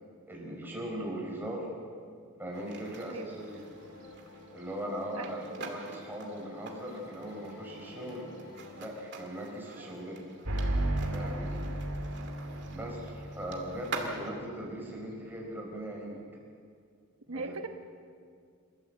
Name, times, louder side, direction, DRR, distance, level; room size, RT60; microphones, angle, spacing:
voice 1, 0.3-1.7 2.4-3.6 4.5-8.3 8.8-10.2 11.1-11.6 12.7-16.2 17.3-17.5, equal, 10° right, -2 dB, 4.9 m, -39 dB
sound 1, 2.5-8.8, left 2 dB, 85° left, 2.7 m, -51 dB
sound 2, 2.5-14.3, right 3 dB, 50° right, 2.5 m, -46 dB
voice 2, 5.1-5.7 11.2-11.3 17.3-17.7, right 4 dB, 70° right, 5 dB, 1.1 m, -39 dB
sound 3, 10.5-14.0, right 1 dB, 90° right, 2.8 m, -33 dB
28.5 x 13.5 x 7.9 m, 2.2 s
head